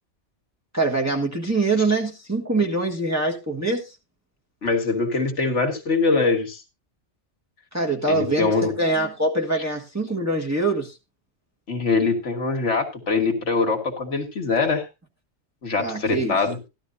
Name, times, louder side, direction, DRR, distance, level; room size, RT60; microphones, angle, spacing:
voice 1, 0.7-3.9 7.7-10.9 15.8-16.4, right 2 dB, 15° right, 0 dB, 1.4 m, -24 dB
voice 2, 4.6-6.6 8.1-8.7 11.7-14.9 15.6-16.6, left 4 dB, 80° left, 4 dB, 2.1 m, -23 dB
14.0 x 12.0 x 2.6 m, 0.24 s
omnidirectional pair, 1.2 m